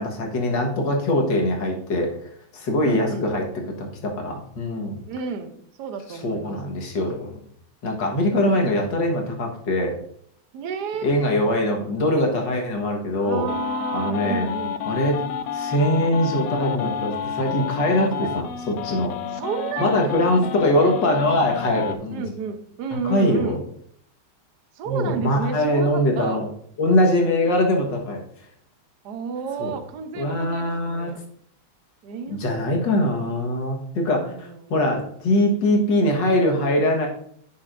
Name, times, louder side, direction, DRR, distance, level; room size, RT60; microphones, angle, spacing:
voice 1, 0.0-3.5 3.8-5.0 6.1-7.4 7.8-10.0 11.0-13.5 13.9-14.5 14.9-15.2 15.5-19.1 19.8-22.3 23.0-23.6 24.9-26.5 26.8-28.2 29.6-29.7 30.1-31.1 32.3-37.1, left 1 dB, 85° left, 1 dB, 2.2 m, -22 dB
voice 2, 2.8-3.3 5.1-6.6 8.3-8.9 10.5-11.1 13.2-14.8 18.0-18.1 19.3-20.1 22.1-23.6 24.8-26.4 29.0-31.2 32.0-32.8 34.0-34.7, right 5 dB, 70° right, 7 dB, 1.4 m, -31 dB
sound 1, 13.5-21.9, left 7 dB, 70° left, 0.9 m, -30 dB
10.5 x 6.6 x 2.6 m, 0.64 s
omnidirectional pair, 1.9 m